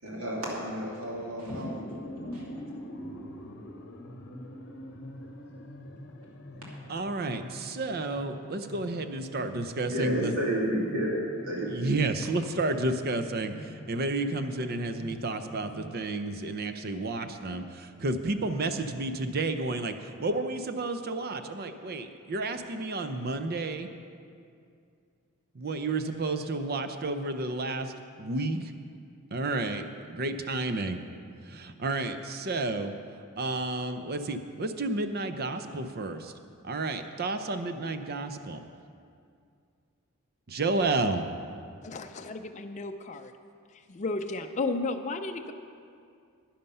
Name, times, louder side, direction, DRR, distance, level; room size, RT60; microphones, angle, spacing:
voice 1, 0.0-1.8 2.3-2.4 9.9-11.1 11.4-12.0, right 1 dB, 75° right, -4 dB, 2.6 m, -31 dB
sound 1, 1.1-15.9, equal, 50° left, 0.9 m, -44 dB
voice 2, 6.9-10.3 11.7-23.9 25.5-28.7 29.3-31.0 31.4-32.9 33.4-36.3 36.6-38.7 40.5-41.3, right 2 dB, 45° right, 8 dB, 0.6 m, -31 dB
voice 3, 41.8-43.3 43.7-45.5, left 3 dB, 35° left, 5 dB, 0.4 m, -33 dB
11.0 x 10.5 x 5.5 m, 2.3 s
head